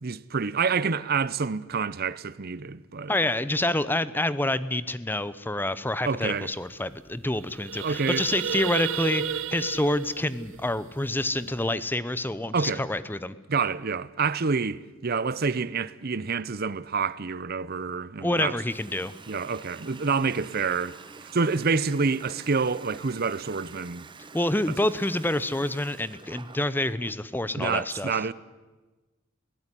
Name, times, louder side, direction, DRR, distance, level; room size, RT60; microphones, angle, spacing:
voice 1, 0.0-3.1 6.1-6.5 7.8-8.3 12.5-12.8 13.5-18.6 19.3-24.1 27.6-28.3, right 5 dB, 50° right, 0.7 m, -28 dB
voice 2, 3.1-13.3 18.2-19.1 24.3-28.1, left 1 dB, 10° left, 0.7 m, -27 dB
sound 1, 6.3-6.4 6.7-6.9 7.2-11.6, right 7 dB, 75° right, 0.9 m, -33 dB
Water tap faucet, 18.7-27.2, right 4 dB, 25° right, 0.9 m, -47 dB
22.5 x 17.0 x 9.9 m
head